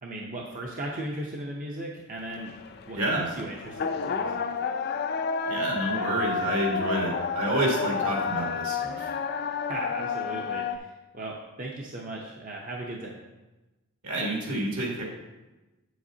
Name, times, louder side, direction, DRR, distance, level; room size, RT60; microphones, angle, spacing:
voice 1, 0.0-2.5 2.9-4.4 9.7-13.2, right 1 dB, 40° right, -2 dB, 0.7 m, -37 dB
sound 1, 2.2-10.8, left 5 dB, 45° left, 0.4 m, -30 dB
voice 2, 2.9-3.3 5.5-9.1 14.0-15.0, right 1 dB, 70° right, -3 dB, 2.3 m, -28 dB
7.9 x 7.8 x 2.8 m, 1.1 s
head